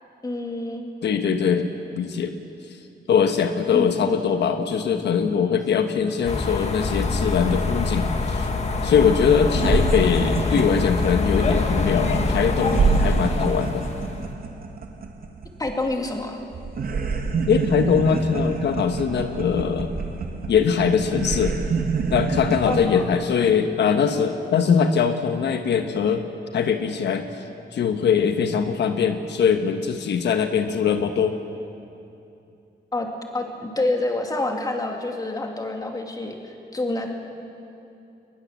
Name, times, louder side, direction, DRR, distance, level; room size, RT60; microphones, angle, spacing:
voice 1, 0.2-0.9 3.7-4.1 15.6-16.4 22.7-23.0 32.9-37.1, left 2 dB, 20° left, 2 dB, 2.6 m, -27 dB
voice 2, 1.0-1.7 2.0-2.4 3.1-8.5 8.8-13.8 17.5-19.9 20.5-21.6 22.1-26.2 26.5-27.4 27.7-31.4, left 7 dB, 80° left, 7 dB, 1.3 m, -22 dB
sound 1, 6.2-14.3, left 3 dB, 40° left, 1.8 m, -25 dB
sound 2, 8.9-9.0 9.2-16.2 16.5-22.9, right 4 dB, 55° right, 1.9 m, -27 dB
22.5 x 21.0 x 7.4 m, 2.8 s
wide cardioid pair, 135°, 18 cm